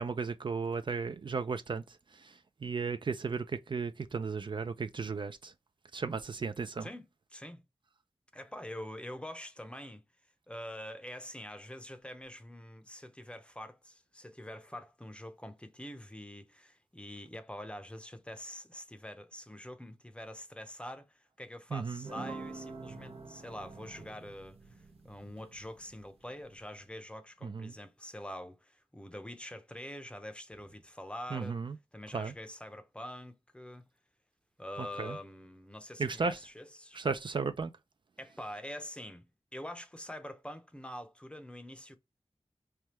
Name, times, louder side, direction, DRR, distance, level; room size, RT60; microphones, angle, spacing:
voice 1, 0.0-5.5 5.9-6.9 21.7-22.1 27.4-27.7 31.3-31.8 32.1-32.3 34.8-35.2 36.0-36.4 36.9-37.7, right 5 dB, 55° right, 0.3 m, -35 dB
voice 2, 7.3-7.6 8.3-10.0 10.5-31.6 31.9-33.9 34.6-37.0 38.2-42.0, left 1 dB, 10° left, 0.6 m, -45 dB
sound 1, 22.0-26.7, right 3 dB, 85° right, 0.8 m, -47 dB
3.4 x 2.2 x 2.9 m
wide cardioid pair, 80°, 10 cm